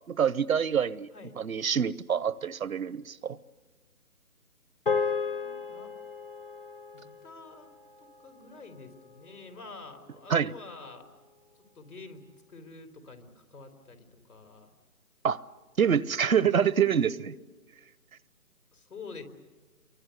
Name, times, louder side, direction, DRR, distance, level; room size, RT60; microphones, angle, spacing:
voice 1, 0.1-1.1 1.4-3.4 10.3-10.5 15.2-15.4 15.8-17.3, right 7 dB, 65° right, 20 dB, 0.8 m, -26 dB
voice 2, 4.9-5.9 6.9-7.7 8.0-11.1 11.7-12.2 12.5-14.7 18.7-19.2, left 3 dB, 85° left, 6 dB, 3.9 m, -48 dB
sound 1, 4.9-9.4, left 5 dB, 35° left, 0.8 m, -35 dB
26.0 x 24.0 x 8.2 m, 1.3 s
hypercardioid pair, 175°, 44 cm